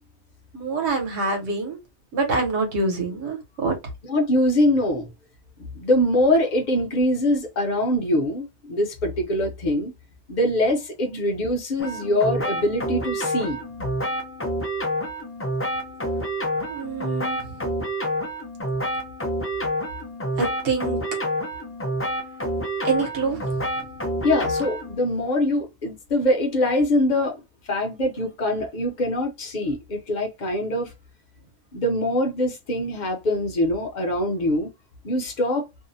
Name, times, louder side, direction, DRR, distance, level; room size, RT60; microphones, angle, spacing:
voice 1, 0.5-1.8 2.1-3.7 11.1-11.2 16.7-17.4 20.4-21.0 22.8-23.4, right 3 dB, 70° right, 1.1 m, -25 dB
voice 2, 4.0-5.1 5.7-9.9 10.3-13.6 24.2-27.4 27.7-30.9 31.7-34.7 35.0-35.7, left 1 dB, 45° left, 0.7 m, -23 dB
sound 1, 11.8-25.0, equal, 20° left, 0.4 m, -28 dB
2.7 x 2.0 x 2.6 m
omnidirectional pair, 1.2 m